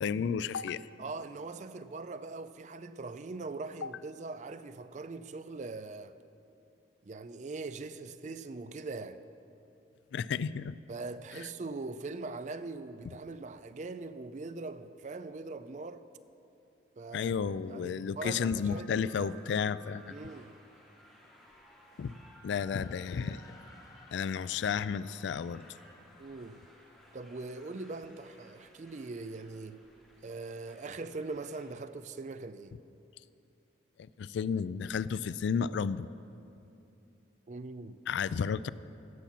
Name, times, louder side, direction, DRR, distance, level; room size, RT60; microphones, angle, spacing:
voice 1, 0.0-0.8 3.8-3.9 10.1-10.8 17.1-20.1 22.0-22.1 22.4-23.4 24.1-25.7 34.2-36.1 38.1-38.7, left 6 dB, 75° left, 0.3 m, -32 dB
voice 2, 1.0-6.2 7.0-9.2 10.9-16.1 17.0-17.3 17.7-19.6 20.1-20.5 26.2-26.6 27.1-29.8 30.2-32.8 37.5-38.0, right 3 dB, 40° right, 0.4 m, -41 dB
sound 1, 18.3-31.7, equal, ahead, 2.4 m, -58 dB
sound 2, 22.4-26.1, left 2 dB, 20° left, 0.8 m, -60 dB
17.0 x 5.8 x 7.3 m
head